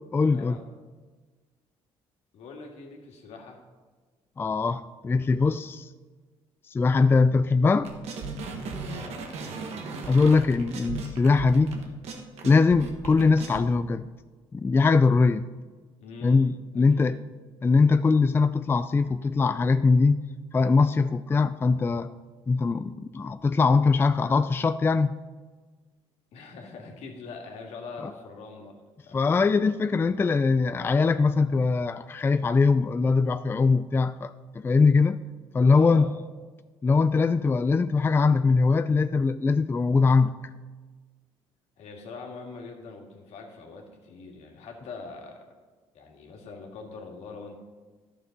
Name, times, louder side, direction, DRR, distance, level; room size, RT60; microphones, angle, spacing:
voice 1, 0.1-0.6 4.4-5.9 6.7-7.9 10.1-11.7 12.4-14.1 14.5-15.5 16.2-17.2 17.6-20.2 20.5-22.1 22.5-25.1 29.1-35.2 35.5-36.1 36.8-40.3, left 4 dB, 20° left, 11 dB, 0.3 m, -22 dB
voice 2, 2.3-3.6 8.8-9.4 16.0-16.5 16.9-17.2 26.3-28.8 29.1-29.2 35.7-36.1 41.8-45.4 45.9-47.6, left 4 dB, 75° left, 1 dB, 1.9 m, -43 dB
sound 1, 7.8-13.6, right 3 dB, 70° right, 1.4 m, -36 dB
11.5 x 6.7 x 5.1 m, 1.4 s
cardioid pair, 85°, 11 cm